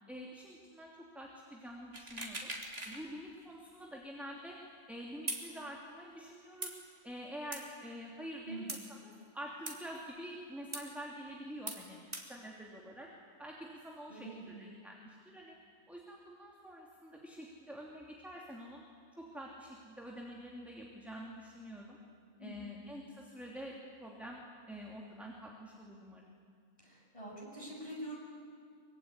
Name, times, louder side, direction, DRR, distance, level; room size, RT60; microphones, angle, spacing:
voice 1, 0.1-2.5 2.9-4.6 4.9-6.8 7.0-12.0 12.3-13.1 13.4-15.6 15.9-18.8 19.2-22.0 22.4-24.4 24.7-26.3, equal, ahead, -2 dB, 2.9 m, -47 dB
sound 1, 1.9-3.0 3.4-3.5 5.3-5.4 6.6-6.7 7.5-7.6 8.7-8.8 9.7-9.8 10.7-10.8 11.7-11.8 12.1-12.2, right 1 dB, 25° right, 3.2 m, -40 dB
voice 2, 8.4-8.8 14.1-14.7 22.4-22.7 26.8-28.2, right 2 dB, 20° left, -3 dB, 8.0 m, -45 dB
24.5 x 24.0 x 9.8 m, 2.2 s
omnidirectional pair, 1.6 m